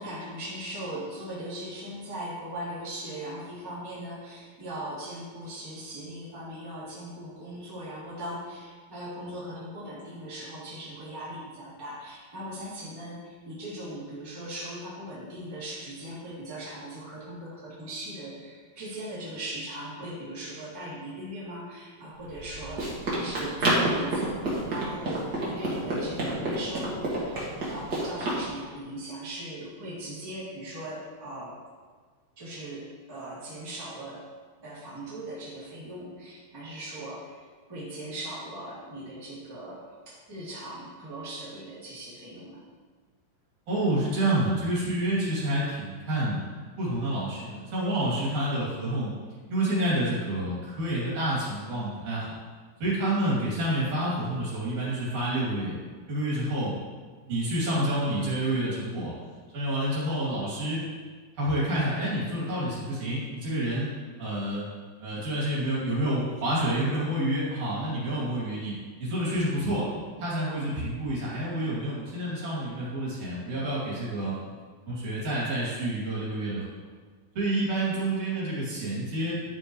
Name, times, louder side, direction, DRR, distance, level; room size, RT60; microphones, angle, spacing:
voice 1, 0.0-24.3 24.7-31.6 32.4-34.3 34.6-42.6, right 1 dB, 5° right, -9 dB, 2.5 m, -39 dB
Run, 22.2-28.4, right 1 dB, 35° right, 2.2 m, -29 dB
voice 2, 43.7-46.4 46.8-49.1 49.5-52.4 52.8-55.7 56.1-56.7 57.3-59.1 59.5-60.8 61.4-63.9 64.2-64.6 65.0-69.9 70.2-74.3 74.9-76.7 77.4-79.4, right 1 dB, 55° right, -8 dB, 4.2 m, -28 dB
11.5 x 8.9 x 3.2 m, 1.5 s
omnidirectional pair, 4.2 m